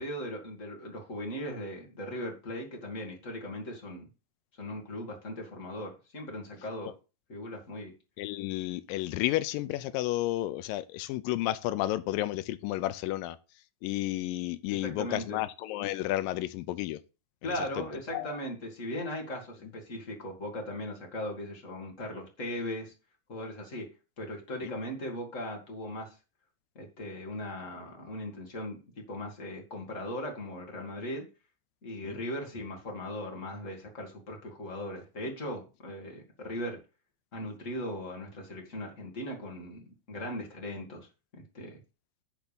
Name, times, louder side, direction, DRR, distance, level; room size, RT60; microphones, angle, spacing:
voice 1, 0.0-4.1 4.6-6.9 7.3-7.9 14.7-15.4 17.4-22.9 23.3-23.9 24.2-26.1 26.7-28.8 29.1-31.3 31.8-36.8 37.3-41.1 41.3-41.8, left 1 dB, 30° left, 1.6 m, -38 dB
voice 2, 8.2-13.4 13.8-17.0 17.4-17.8 18.1-18.3 24.6-24.7 32.0-32.2, left 15 dB, 80° left, 2.3 m, -32 dB
10.5 x 3.6 x 6.7 m
omnidirectional pair, 4.1 m